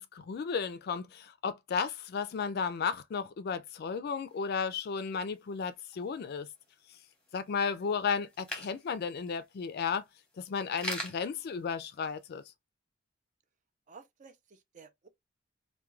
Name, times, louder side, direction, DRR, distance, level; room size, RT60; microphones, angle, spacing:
voice 1, 0.0-6.5 7.3-10.0 10.4-12.4, left 5 dB, 55° left, 0.4 m, -34 dB
sound 1, 4.3-12.4, equal, 5° left, 0.8 m, -46 dB
voice 2, 13.9-15.1, right 5 dB, 40° right, 0.4 m, -54 dB
2.3 x 2.2 x 3.0 m
head